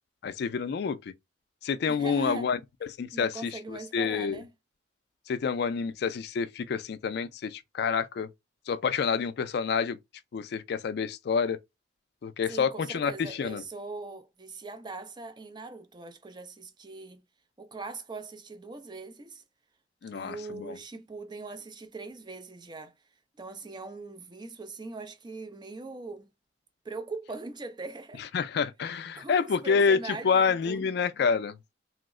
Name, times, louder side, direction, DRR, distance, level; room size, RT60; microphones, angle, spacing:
voice 1, 0.2-1.1 1.6-2.6 3.0-4.4 5.3-8.3 8.7-10.0 10.3-11.6 12.2-13.6 20.0-20.8 28.3-31.6, left 6 dB, 55° left, 0.3 m, -28 dB
voice 2, 1.9-2.5 3.1-4.5 12.5-17.2 17.6-19.4 20.1-22.9 23.4-26.3 26.8-28.2 29.2-30.9, right 3 dB, 25° right, 0.4 m, -41 dB
3.0 x 2.0 x 3.6 m
head